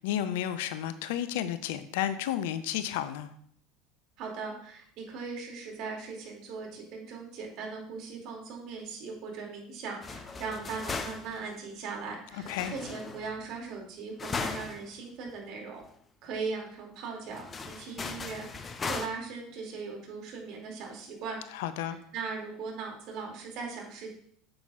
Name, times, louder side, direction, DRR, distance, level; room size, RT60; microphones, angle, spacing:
voice 1, 0.0-3.3 12.3-12.7 21.5-22.0, left 11 dB, 70° left, 12 dB, 0.5 m, -32 dB
voice 2, 4.2-15.8 16.2-21.4 21.8-24.1, right 4 dB, 55° right, 0 dB, 2.4 m, -39 dB
sound 1, 10.0-11.5 12.4-13.4 14.2-14.9 15.3-15.4 15.8-15.9 17.3-19.1, left 4 dB, 25° left, 0.8 m, -37 dB
8.7 x 7.5 x 2.4 m, 0.63 s
hypercardioid pair, 75°, 0 cm